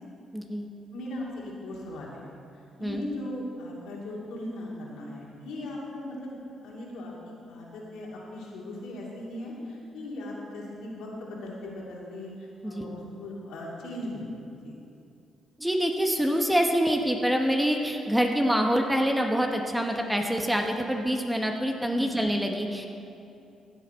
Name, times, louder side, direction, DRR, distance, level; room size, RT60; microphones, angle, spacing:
voice 1, 0.3-0.7 2.8-3.0 12.6-12.9 15.6-22.9, equal, 5° right, 3 dB, 1.1 m, -26 dB
voice 2, 0.9-2.3 2.8-6.3 6.6-14.4 14.6-14.7 21.9-22.1, left 1 dB, 85° left, -4 dB, 2.7 m, -38 dB
15.5 x 8.2 x 4.5 m, 2.6 s
cardioid pair, 90°, 0 cm